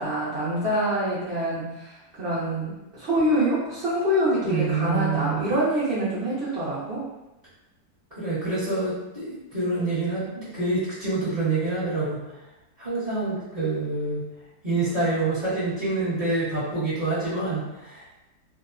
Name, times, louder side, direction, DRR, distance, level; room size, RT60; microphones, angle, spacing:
voice 1, 0.0-7.0, equal, 55° right, -10 dB, 0.6 m, -25 dB
voice 2, 4.5-5.5 8.2-12.4 12.8-14.2 14.6-18.2, right 3 dB, 35° right, -13 dB, 0.9 m, -27 dB
2.7 x 2.1 x 2.4 m, 0.96 s
omnidirectional pair, 1.8 m